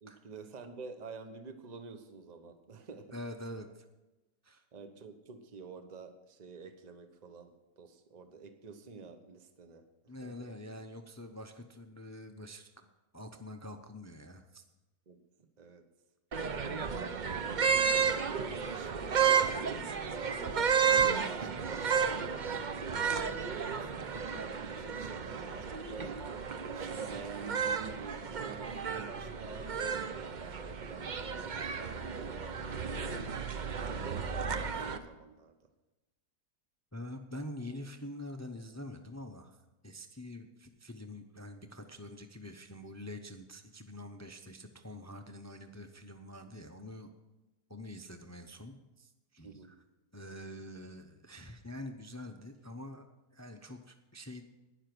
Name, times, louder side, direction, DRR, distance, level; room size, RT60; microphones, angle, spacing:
voice 1, 0.0-3.1 4.7-10.5 15.1-15.9 16.5-16.7 17.1-17.9 18.4-26.2 26.7-32.4 33.3-35.6 49.4-49.7, right 4 dB, 30° right, 8 dB, 1.0 m, -49 dB
voice 2, 3.1-3.9 4.4-4.6 10.1-12.9 13.1-14.6 36.9-47.1 47.7-49.8 50.1-54.4, left 1 dB, 25° left, 7 dB, 0.4 m, -46 dB
sound 1, 16.3-35.0, right 6 dB, 50° right, 0.5 m, -32 dB
12.0 x 10.0 x 6.1 m, 1.1 s
omnidirectional pair, 1.7 m